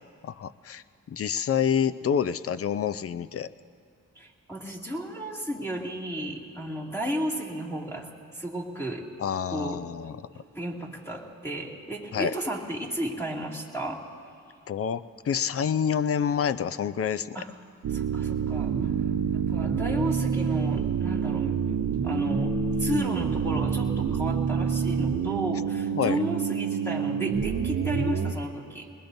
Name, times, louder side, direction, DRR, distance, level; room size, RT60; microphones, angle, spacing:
voice 1, 0.2-3.5 9.2-10.1 12.1-12.3 14.7-17.4 25.9-26.2, left 8 dB, 45° left, 14 dB, 0.5 m, -28 dB
voice 2, 4.2-9.1 9.5-9.8 10.3-14.0 17.3-17.5 17.9-28.9, equal, 10° left, -1 dB, 2.3 m, -33 dB
sound 1, 17.8-28.3, right 6 dB, 75° right, 0.8 m, -27 dB
22.0 x 20.5 x 2.7 m, 2.3 s
cardioid pair, 75°, 32 cm